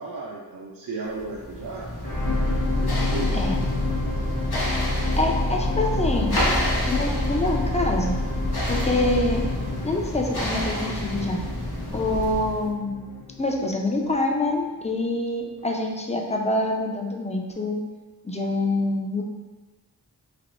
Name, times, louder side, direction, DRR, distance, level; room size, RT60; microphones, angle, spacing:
voice 1, 0.0-1.9 2.8-3.8, right 3 dB, 60° right, -2 dB, 0.5 m, -35 dB
sound 1, 1.2-12.7, equal, 70° left, 1.0 m, -30 dB
sound 2, 2.0-14.4 15.0-15.1, left 2 dB, 55° left, 1.4 m, -28 dB
voice 2, 4.9-6.4 6.9-8.2 8.6-9.4 9.8-11.4 11.9-13.0 13.4-17.8 18.2-19.2, left 2 dB, 20° left, 1 dB, 0.4 m, -26 dB
3.4 x 3.0 x 2.4 m, 1.2 s
wide cardioid pair, 50°, 39 cm